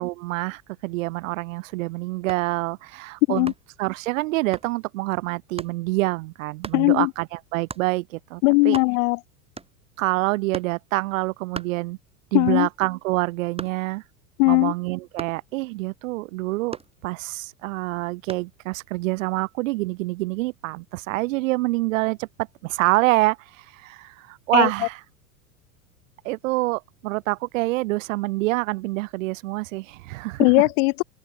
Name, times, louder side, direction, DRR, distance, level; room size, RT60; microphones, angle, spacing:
voice 1, 0.0-3.5 3.8-8.8 10.0-12.0 12.3-14.0 14.5-16.8 17.0-22.3 22.6-25.0 26.2-30.5, right 21 dB, 55° right, 1.3 m, -26 dB
sound 1, 2.3-2.6 3.5-3.8 4.5-4.7 5.6-5.8 6.6-6.9 7.7-7.9 8.4-8.5 8.6-9.2 9.6-10.0 10.5-10.8 11.5-12.3 12.7-14.0 15.2-15.5 16.7-17.4 18.3-18.6, right 4 dB, 10° right, 2.4 m, -38 dB
voice 2, 6.7-7.1 8.4-9.2 12.3-12.7 14.4-14.7 24.5-24.7 30.4-31.0, left 29 dB, 50° left, 1.6 m, -19 dB
open air
hypercardioid pair, 90°, 47 cm